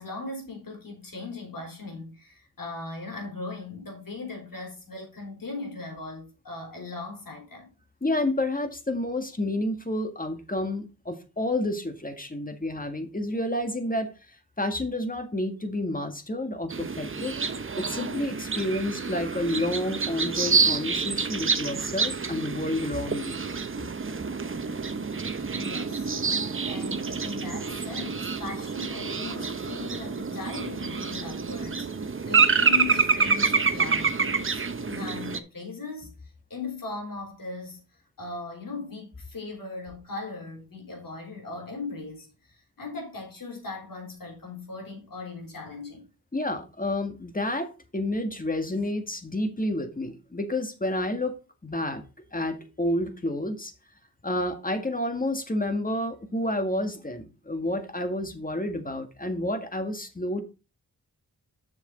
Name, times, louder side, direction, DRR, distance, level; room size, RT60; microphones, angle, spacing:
voice 1, 0.0-7.7 25.5-36.1 36.5-37.8 38.2-46.1, left 3 dB, 60° left, 3.8 m, -39 dB
voice 2, 8.0-14.1 14.6-17.4 17.7-23.4 46.3-51.3 51.6-52.0 52.3-53.7 54.2-60.4, left 1 dB, 20° left, 1.7 m, -30 dB
sound 1, 16.7-35.4, right 5 dB, 35° right, 0.8 m, -27 dB
7.0 x 6.9 x 3.9 m
cardioid pair, 50°, 38 cm